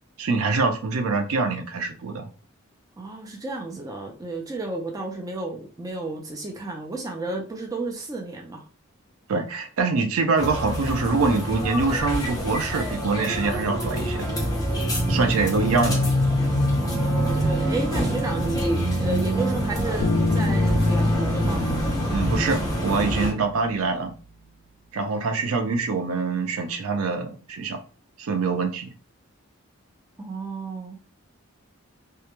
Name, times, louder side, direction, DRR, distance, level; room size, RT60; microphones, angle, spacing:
voice 1, 0.2-2.3 9.3-14.3 15.1-16.0 22.1-24.1 24.9-27.8 28.2-28.9, right 4 dB, 80° right, 6 dB, 0.5 m, -24 dB
voice 2, 3.0-8.6 16.8-21.6 30.2-31.0, right 2 dB, 15° right, 1 dB, 0.3 m, -32 dB
sound 1, 10.4-23.3, equal, 15° left, 0.7 m, -25 dB
Bass guitar, 20.0-23.7, left 3 dB, 60° left, 0.3 m, -28 dB
2.2 x 2.1 x 2.9 m, 0.37 s
head